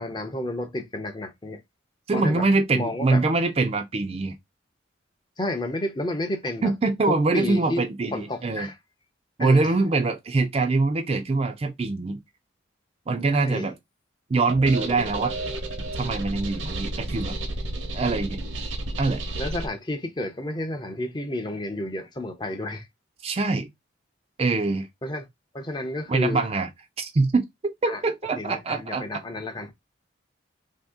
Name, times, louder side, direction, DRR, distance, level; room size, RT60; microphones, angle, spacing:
voice 1, 0.0-1.6 2.1-2.5 2.7-3.2 5.4-6.7 7.1-7.8 8.1-8.8 9.4-9.7 13.3-13.7 19.4-22.9 25.0-25.3 25.5-26.5 27.9-28.0 28.4-29.7, left 1 dB, 20° left, 0.5 m, -31 dB
voice 2, 2.1-4.4 6.6-8.7 9.4-12.2 13.1-13.7 14.3-15.3 16.0-17.4 17.9-18.4 19.0-19.2 23.2-23.7 24.4-24.9 26.1-26.7 27.0-29.0, right 3 dB, 30° right, 0.4 m, -24 dB
sound 1, 14.5-19.7, right 2 dB, 85° right, 1.0 m, -32 dB
2.8 x 2.7 x 3.5 m
head